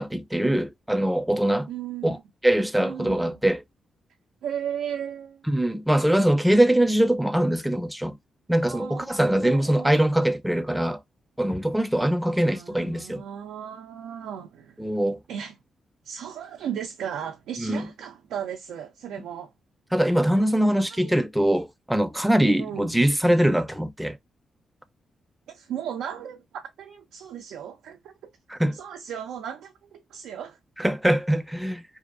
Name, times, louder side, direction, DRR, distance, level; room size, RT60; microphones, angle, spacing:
voice 1, 0.0-1.7 2.0-2.2 2.4-3.6 5.5-8.2 8.5-11.0 11.4-13.2 14.8-15.2 17.6-17.8 19.9-24.2 28.5-28.8 30.8-31.8, right 1 dB, 5° right, 0.4 m, -22 dB
voice 2, 1.7-2.2 2.8-3.4 4.4-5.5 8.7-9.1 9.4-10.0 12.4-14.8 15.3-15.6 16.0-19.5 20.9-21.2 22.6-22.9 25.5-28.3 28.7-30.6, right 9 dB, 90° right, 0.4 m, -36 dB
2.7 x 2.3 x 2.4 m
cardioid pair, 65°, 0 cm